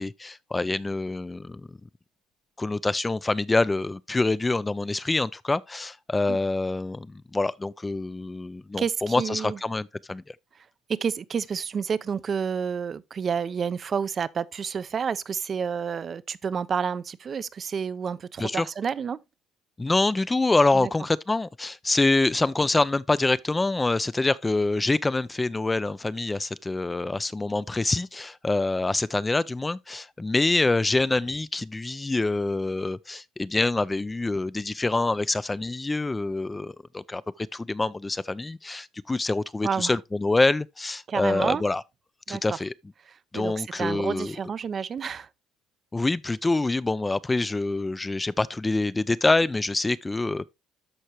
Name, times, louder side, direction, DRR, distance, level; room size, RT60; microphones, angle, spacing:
voice 1, 0.0-1.8 2.6-10.2 18.4-18.7 19.8-41.8 42.3-42.7 43.3-44.4 45.9-50.4, left 2 dB, 15° left, 0.4 m, -26 dB
voice 2, 8.8-9.6 10.9-19.2 20.7-20.9 39.6-40.0 41.1-41.6 42.3-42.6 43.1-45.3, right 6 dB, 40° right, 0.5 m, -29 dB
13.0 x 4.6 x 2.9 m
supercardioid pair, 95°, 0 cm